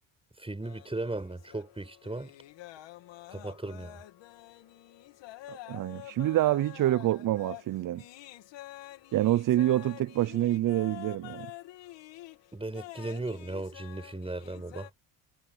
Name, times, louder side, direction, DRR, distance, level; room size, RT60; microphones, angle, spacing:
voice 1, 0.4-2.3 3.3-4.0 12.5-14.9, right 2 dB, 10° right, 6.0 m, -36 dB
sound 1, 0.6-14.9, left 16 dB, 75° left, 2.7 m, -48 dB
voice 2, 5.5-8.0 9.1-11.5, right 14 dB, 45° right, 0.6 m, -27 dB
supercardioid pair, 85°, 45 cm